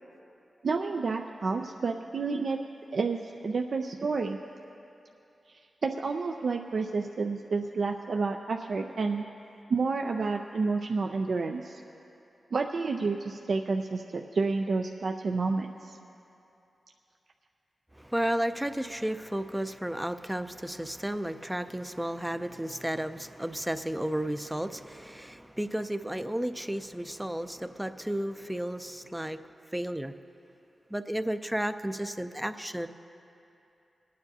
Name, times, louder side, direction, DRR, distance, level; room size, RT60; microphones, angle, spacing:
voice 1, 0.6-2.6 2.9-4.4 5.8-9.2 9.7-11.8 12.5-16.0, right 4 dB, 65° right, 3 dB, 0.4 m, -30 dB
voice 2, 18.0-29.4 29.7-30.1 30.9-32.9, right 1 dB, 10° right, 10 dB, 0.4 m, -33 dB
25.5 x 9.4 x 2.8 m, 2.8 s
cardioid pair, 70°, 0 cm